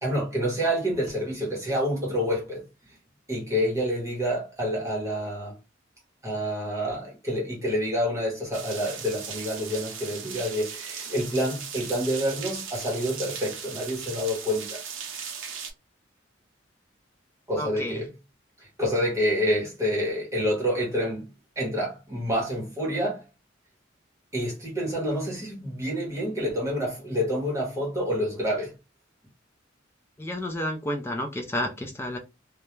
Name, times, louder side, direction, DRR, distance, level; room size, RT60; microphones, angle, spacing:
voice 1, 0.0-3.0 3.3-5.6 6.2-14.8 17.5-18.1 18.6-21.3 21.6-23.2 24.3-28.7, equal, 15° right, 0.9 m, -28 dB
sound 1, 8.5-15.7, right 7 dB, 80° right, 0.6 m, -38 dB
voice 2, 17.6-18.0 30.2-32.2, left 1 dB, 15° left, 0.3 m, -31 dB
2.3 x 2.1 x 3.0 m
head